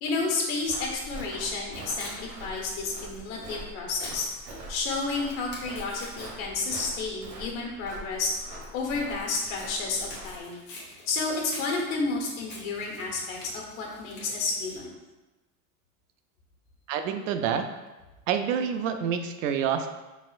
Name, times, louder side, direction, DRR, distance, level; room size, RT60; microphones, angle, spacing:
voice 1, 0.0-4.3 4.7-8.3 8.7-10.6 11.1-14.9, left 3 dB, 80° left, -1 dB, 1.3 m, -31 dB
Walk footsteps, 0.6-10.4, right 1 dB, 40° right, 1.1 m, -43 dB
Tearing, 1.5-14.8, left 2 dB, 25° left, 0.9 m, -48 dB
voice 2, 16.9-17.7 18.3-19.9, right 8 dB, 70° right, 7 dB, 0.5 m, -27 dB
5.1 x 4.1 x 2.4 m, 1.1 s
supercardioid pair, 180°, 41 cm